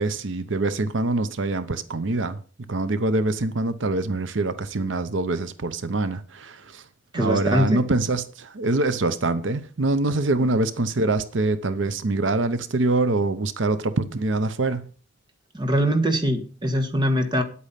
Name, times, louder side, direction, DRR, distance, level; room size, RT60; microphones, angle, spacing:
voice 1, 0.0-2.4 2.7-6.8 7.1-14.9, right 2 dB, 90° right, 0.8 m, -24 dB
voice 2, 7.1-7.8 15.5-17.4, equal, 25° right, 1.5 m, -22 dB
9.7 x 8.5 x 5.8 m
head